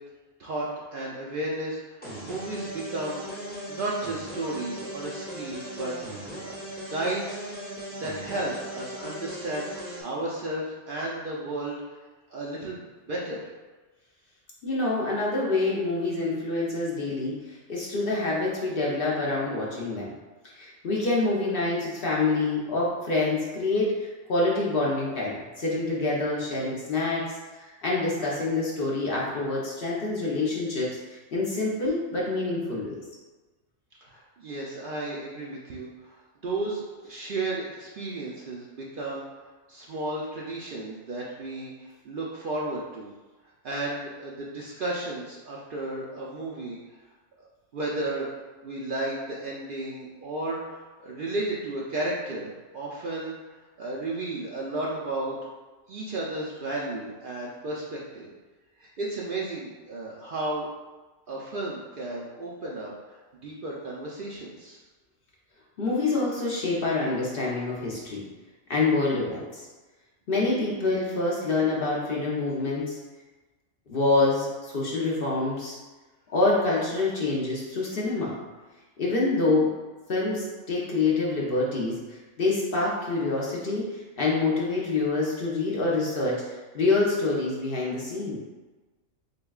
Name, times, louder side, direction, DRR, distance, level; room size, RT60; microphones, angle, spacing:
voice 1, 0.4-3.2 3.7-6.6 6.9-7.4 8.0-11.8 12.3-13.4 34.0-36.1 36.4-39.2 39.7-43.1 43.6-46.8 47.7-53.4 53.8-55.3 55.9-58.3 58.8-60.7 61.3-62.9 63.4-64.8, right 2 dB, 55° right, -4 dB, 0.6 m, -33 dB
sound 1, 2.0-10.0, equal, 10° left, 0.8 m, -38 dB
voice 2, 14.6-20.1 20.6-33.0 65.8-68.2 68.7-69.6 70.3-73.0 73.9-75.8 76.3-78.3 79.0-79.7 80.1-86.4 86.7-88.4, left 3 dB, 50° left, -4 dB, 0.9 m, -26 dB
6.5 x 2.3 x 2.3 m, 1.2 s
omnidirectional pair, 1.3 m